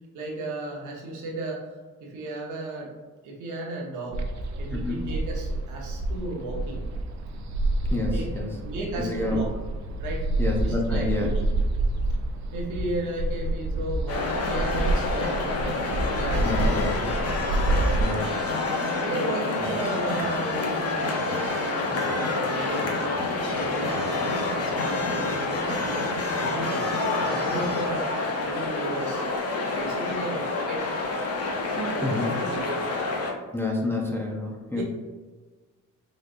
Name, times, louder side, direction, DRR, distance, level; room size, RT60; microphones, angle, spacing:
voice 1, 0.1-1.7 2.0-2.9 3.2-4.2 4.6-6.8 7.9-9.5 10.0-10.3 10.6-11.4 12.5-15.9 16.1-17.1 17.8-18.0 19.0-23.2 23.5-26.1 26.4-26.8 27.2-28.1 28.4-29.3 29.8-30.8 31.7-32.6 34.7-34.8, right 2 dB, 80° right, -2 dB, 1.0 m, -34 dB
sound 1, 4.1-18.0, right 2 dB, 60° right, 0.6 m, -28 dB
voice 2, 4.7-5.1 7.9-8.6 9.0-9.4 10.4-11.3 16.4-16.9 18.0-18.3 19.6-19.7 32.0-32.3 33.5-34.8, left 2 dB, 10° left, -2 dB, 0.6 m, -29 dB
sound 2, 14.1-33.3, left 3 dB, 55° left, 0.8 m, -28 dB
4.1 x 3.1 x 2.5 m, 1.3 s
cardioid pair, 90°, 30 cm